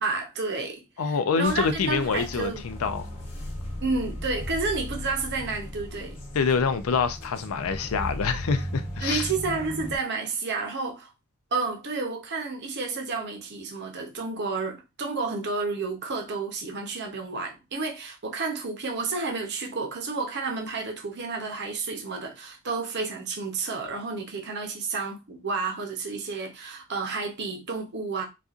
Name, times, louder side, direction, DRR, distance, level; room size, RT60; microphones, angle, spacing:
voice 1, 0.0-2.6 3.8-6.2 9.0-11.1 11.5-28.2, right 4 dB, 50° right, 0.8 m, -31 dB
voice 2, 1.0-3.1 6.3-9.3, left 5 dB, 80° left, 0.4 m, -26 dB
sound 1, 1.4-10.0, equal, 30° left, 1.1 m, -36 dB
4.1 x 2.4 x 2.4 m
head